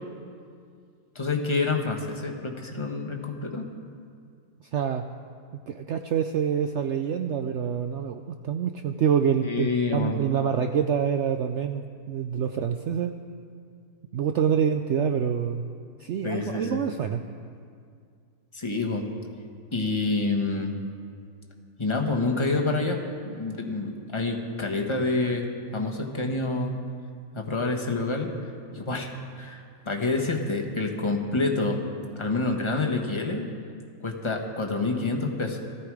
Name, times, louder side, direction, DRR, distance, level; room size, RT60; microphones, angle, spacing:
voice 1, 1.1-3.6 9.4-10.2 16.2-16.8 18.5-19.1 19.7-20.7 21.8-26.8 27.3-28.3 28.7-29.1 29.4-31.8 32.2-33.5 34.0-35.6, left 3 dB, 20° left, 2 dB, 1.2 m, -27 dB
voice 2, 4.7-5.1 5.7-13.2 14.1-15.6 16.0-17.2, right 8 dB, 75° right, 7 dB, 0.6 m, -26 dB
16.5 x 13.5 x 4.8 m, 2.2 s
omnidirectional pair, 1.7 m